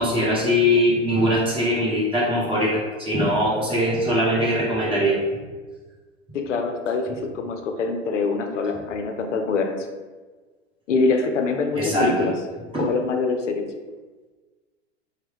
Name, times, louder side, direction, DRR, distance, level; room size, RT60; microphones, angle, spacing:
voice 1, 0.0-5.2 11.8-12.1 12.7-12.8, equal, 15° right, -7 dB, 1.1 m, -21 dB
voice 2, 6.3-9.9 10.9-12.4 12.8-13.7, left 4 dB, 80° left, 5 dB, 0.5 m, -24 dB
3.0 x 2.1 x 3.5 m, 1.3 s
figure-of-eight pair, 85°, 36 cm